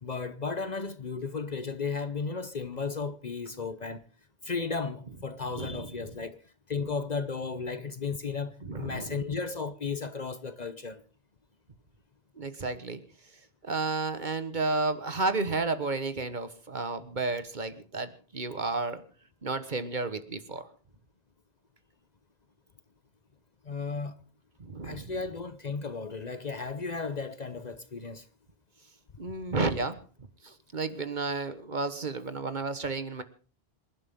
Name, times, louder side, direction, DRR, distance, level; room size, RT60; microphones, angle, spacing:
voice 1, 0.0-4.0 4.4-6.4 6.7-11.0 23.6-24.2 24.8-28.3, left 4 dB, 45° left, 0.9 m, -34 dB
voice 2, 5.5-5.9 8.6-9.2 12.4-13.0 13.6-19.0 19.4-20.7 24.6-25.1 29.2-30.0 30.4-33.2, right 3 dB, 45° right, 1.5 m, -32 dB
27.0 x 11.5 x 3.7 m
omnidirectional pair, 1.1 m